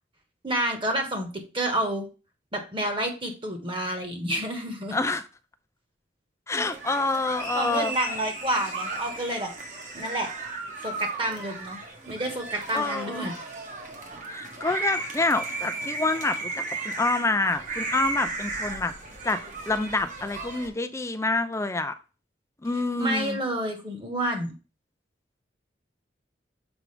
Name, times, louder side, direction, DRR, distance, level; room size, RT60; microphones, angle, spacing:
voice 1, 0.4-1.3 1.5-2.1 2.5-5.0 7.5-9.5 9.9-10.3 10.8-11.8 12.1-13.3 23.0-24.5, right 1 dB, 30° right, 1.3 m, -29 dB
voice 2, 4.9-5.2 6.5-7.9 12.7-13.3 14.3-18.9 19.2-19.4 19.7-21.9 22.6-23.4, left 3 dB, 15° left, 0.4 m, -27 dB
sound 1, 6.6-20.7, right 3 dB, 45° right, 1.2 m, -35 dB
6.2 x 4.7 x 3.3 m
head